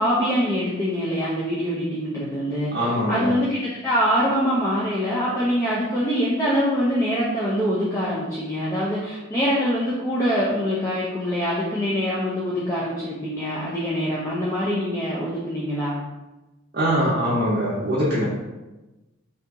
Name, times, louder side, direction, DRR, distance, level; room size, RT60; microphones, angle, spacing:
voice 1, 0.0-16.0, equal, 15° left, -8 dB, 0.4 m, -24 dB
voice 2, 2.7-3.3 16.7-18.3, equal, 45° right, -9 dB, 0.6 m, -22 dB
2.7 x 2.4 x 3.5 m, 1.1 s
head